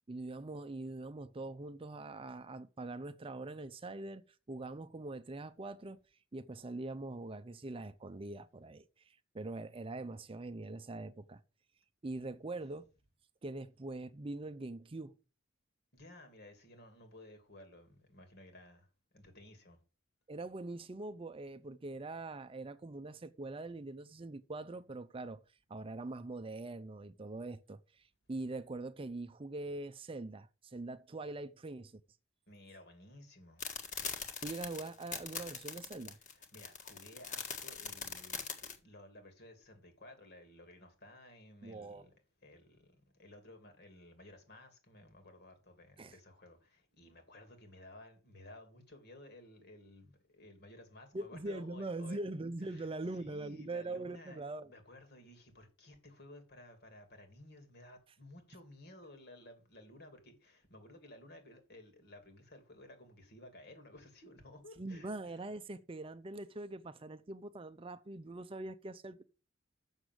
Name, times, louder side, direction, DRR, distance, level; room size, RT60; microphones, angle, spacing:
voice 1, 0.1-6.0 6.3-11.4 12.0-12.9 13.4-15.2 20.3-32.0 34.4-36.2 41.6-42.1 46.0-46.2 51.1-54.7 64.8-69.2, right 2 dB, 25° right, 0.5 m, -43 dB
voice 2, 15.9-19.8 32.5-33.7 36.2-42.1 42.4-52.2 52.7-52.9 53.1-65.4, left 1 dB, 55° left, 2.9 m, -56 dB
sound 1, 33.6-38.8, left 6 dB, 40° left, 1.7 m, -41 dB
7.2 x 6.6 x 7.7 m
head